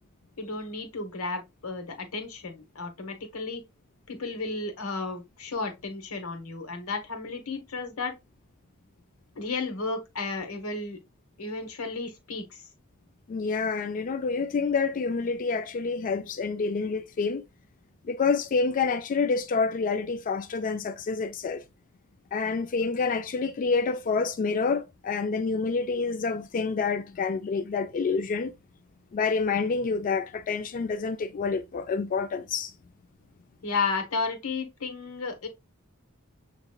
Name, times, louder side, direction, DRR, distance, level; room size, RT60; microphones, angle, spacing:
voice 1, 0.4-3.6 4.1-8.1 9.4-11.0 11.4-12.7 33.6-35.5, left 3 dB, 90° left, 1.1 m, -33 dB
voice 2, 13.3-17.4 18.1-21.6 22.3-28.5 29.1-32.7, left 4 dB, 40° left, 0.3 m, -28 dB
6.7 x 2.9 x 2.3 m
head